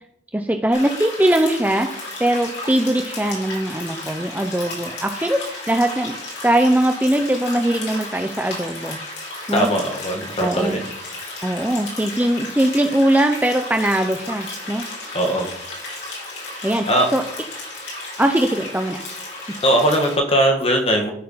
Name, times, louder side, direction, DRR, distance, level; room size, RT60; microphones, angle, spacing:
voice 1, 0.3-1.9 2.2-6.1 6.4-9.0 9.5-9.7 10.4-10.8 11.4-14.8 16.6-16.9 17.1-17.2 18.2-19.0, right 1 dB, 10° right, 4 dB, 0.6 m, -20 dB
sound 1, 0.7-20.2, left 2 dB, 80° left, 4.0 m, -34 dB
voice 2, 9.5-10.8 15.1-15.5 16.9-17.1 19.6-21.1, right 1 dB, 35° left, 2 dB, 1.7 m, -19 dB
13.0 x 4.6 x 5.6 m, 0.74 s
head